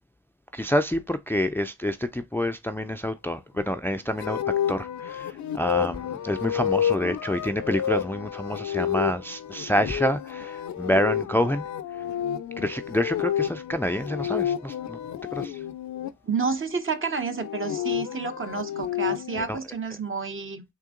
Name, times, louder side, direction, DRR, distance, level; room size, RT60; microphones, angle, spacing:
voice 1, 0.5-4.4 4.7-11.7 12.6-15.0 15.3-15.6 19.5-19.6, left 1 dB, 10° left, 0.4 m, -27 dB
sound 1, 4.2-16.1 17.2-19.5, left 10 dB, 75° left, 0.5 m, -30 dB
voice 2, 16.2-20.6, right 5 dB, 45° right, 1.0 m, -30 dB
3.7 x 2.8 x 3.6 m
supercardioid pair, 40°, 29 cm